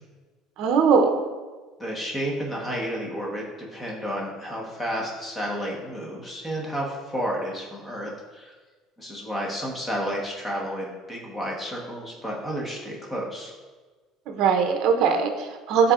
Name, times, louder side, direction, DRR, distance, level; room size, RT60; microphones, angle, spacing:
voice 1, 0.6-1.2 14.3-15.9, right 6 dB, 55° right, 5 dB, 0.6 m, -20 dB
voice 2, 1.8-8.5 9.0-13.5, equal, 10° left, -2 dB, 1.1 m, -31 dB
10.5 x 4.0 x 2.4 m, 1.3 s
cardioid pair, 160°, 0 cm